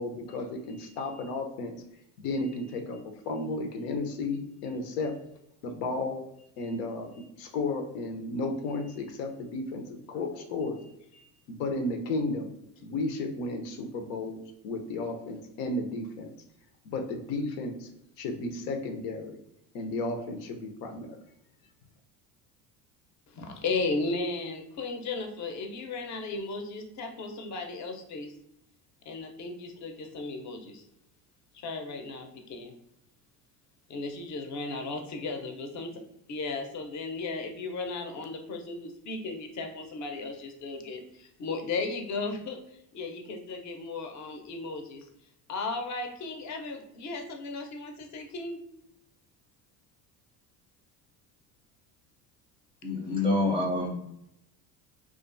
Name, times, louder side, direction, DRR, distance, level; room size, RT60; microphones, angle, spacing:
voice 1, 0.0-1.7 2.2-5.1 5.6-6.2 6.6-12.5 12.8-16.3 16.8-17.9 18.2-19.4 19.7-21.2, left 2 dB, 85° left, 4 dB, 0.6 m, -33 dB
voice 2, 23.4-28.3 29.1-30.8 31.6-32.7 33.9-35.9 36.3-42.6 42.9-45.1 45.5-48.6, left 3 dB, 40° left, 4 dB, 0.6 m, -35 dB
voice 3, 52.8-54.1, left 2 dB, 15° right, -3 dB, 0.3 m, -27 dB
2.4 x 2.3 x 2.5 m, 0.79 s
supercardioid pair, 85°, 47 cm